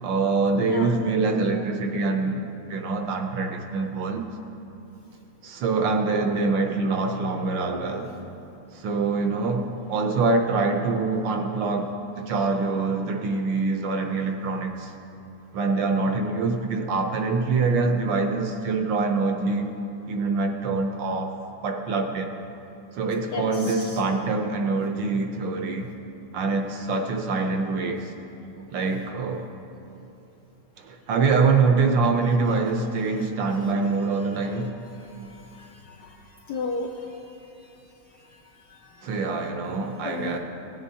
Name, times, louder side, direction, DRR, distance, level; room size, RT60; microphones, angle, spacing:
voice 1, 0.0-2.4 2.7-4.3 5.4-8.1 8.7-11.9 12.1-14.9 15.5-19.7 20.1-22.3 22.9-25.9 26.3-28.1 28.7-29.4 30.8-34.7 39.0-40.4, right 4 dB, 70° right, 4 dB, 1.2 m, -25 dB
voice 2, 23.3-23.8 35.5-36.1 36.5-36.9 38.7-39.1 40.0-40.3, left 4 dB, 80° left, 2 dB, 0.9 m, -33 dB
16.0 x 8.9 x 2.7 m, 2.8 s
omnidirectional pair, 2.3 m